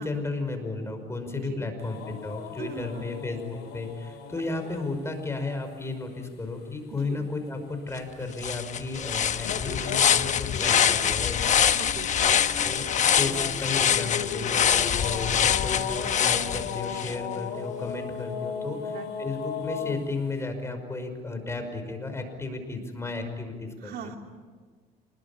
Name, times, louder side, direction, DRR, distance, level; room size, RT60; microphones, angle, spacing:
voice 1, 0.0-11.4 12.6-12.8 13.2-24.1, left 3 dB, 15° left, 6 dB, 5.4 m, -34 dB
sound 1, 1.8-5.0 9.0-20.0, left 7 dB, 80° left, 5.9 m, -37 dB
voice 2, 2.6-3.1 6.9-7.2 11.8-12.4 18.9-19.1 23.8-24.2, right 7 dB, 70° right, 3 dB, 2.9 m, -40 dB
sound 2, 8.0-8.1 8.4-17.2, left 8 dB, 45° left, 1.1 m, -24 dB
27.0 x 21.0 x 8.7 m, 1.5 s
cardioid pair, 110°, 17 cm